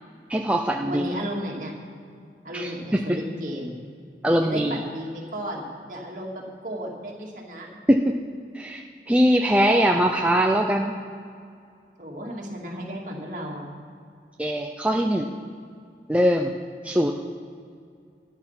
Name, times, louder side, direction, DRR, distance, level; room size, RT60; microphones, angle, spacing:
voice 1, 0.3-1.1 2.5-3.2 4.2-4.8 7.9-8.0 8.5-11.0 14.4-15.3 16.1-16.5 16.8-17.1, equal, 5° right, 1 dB, 0.5 m, -22 dB
voice 2, 0.8-1.7 2.4-3.8 4.4-7.7 12.0-13.6, equal, 45° right, -2 dB, 2.4 m, -34 dB
12.5 x 11.0 x 5.9 m, 2.3 s
head